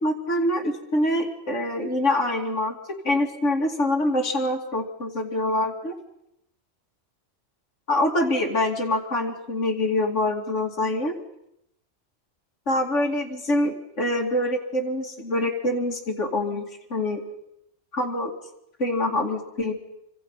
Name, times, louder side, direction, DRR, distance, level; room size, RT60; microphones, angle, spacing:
voice 1, 0.0-2.7 3.0-5.9 7.9-11.1 12.7-16.6 16.9-17.2 17.9-18.3 18.8-19.7, left 1 dB, 70° left, 1 dB, 3.0 m, -25 dB
26.0 x 25.5 x 5.7 m, 0.80 s
omnidirectional pair, 1.3 m